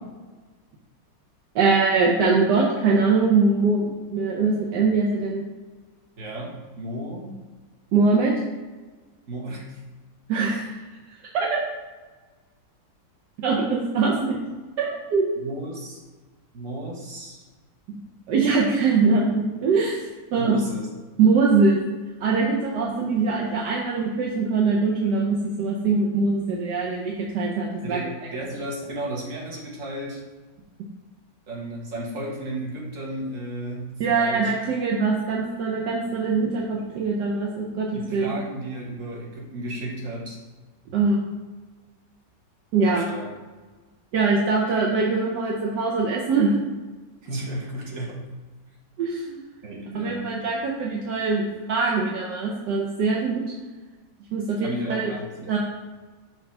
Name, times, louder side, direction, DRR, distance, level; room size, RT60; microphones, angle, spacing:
voice 1, 1.5-5.4 7.9-8.3 10.3-10.7 11.3-11.6 13.4-14.4 14.8-15.2 18.3-20.5 21.2-21.8 22.2-28.1 34.0-38.2 40.9-41.2 42.7-43.0 44.1-46.5 49.0-49.4 49.9-53.4 54.3-55.1 55.4-55.6, right 4 dB, 75° right, -2 dB, 1.4 m, -22 dB
voice 2, 6.2-7.3 9.3-9.8 15.4-16.0 16.5-17.5 20.3-20.9 27.8-30.2 31.5-34.5 36.5-36.7 37.9-40.4 42.8-43.3 47.2-48.2 49.6-50.3 54.6-55.6, right 1 dB, 50° right, -3 dB, 1.7 m, -33 dB
6.3 x 3.4 x 5.3 m, 1.3 s
omnidirectional pair, 1.9 m